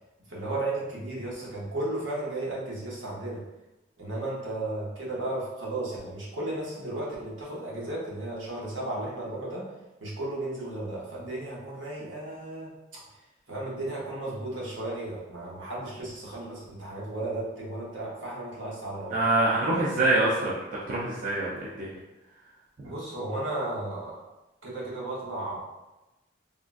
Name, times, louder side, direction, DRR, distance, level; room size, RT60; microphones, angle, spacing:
voice 1, 0.3-3.4 4.0-9.6 10.0-12.7 13.5-19.2 22.8-24.3 24.6-25.6, right 2 dB, 75° right, -6 dB, 1.0 m, -34 dB
voice 2, 19.1-21.9, right 2 dB, 40° right, -7 dB, 0.4 m, -25 dB
3.6 x 2.3 x 2.5 m, 1.0 s
head